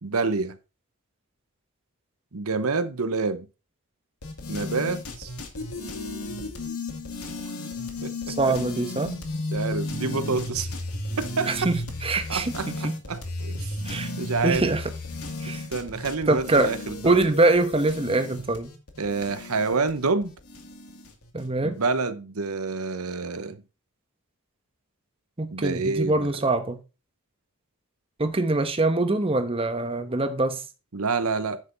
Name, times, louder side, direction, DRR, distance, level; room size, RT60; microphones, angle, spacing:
voice 1, 0.0-0.6 2.3-3.5 4.5-5.3 8.0-8.1 9.0-9.2 9.5-10.7 11.2-11.5 12.3-13.7 14.2-14.7 15.7-17.2 19.0-20.3 21.6-23.6 25.5-26.4 30.9-31.6, right 4 dB, 75° right, 0.9 m, -28 dB
sound 1, 4.2-21.4, left 2 dB, 80° left, 2.3 m, -34 dB
voice 2, 8.3-9.1 11.5-13.0 13.8-14.1 14.4-14.9 15.4-15.6 16.3-16.7 17.0-18.7 21.3-21.8 25.4-26.8 28.2-30.6, right 2 dB, 25° right, 1.0 m, -24 dB
9.9 x 6.7 x 4.0 m
head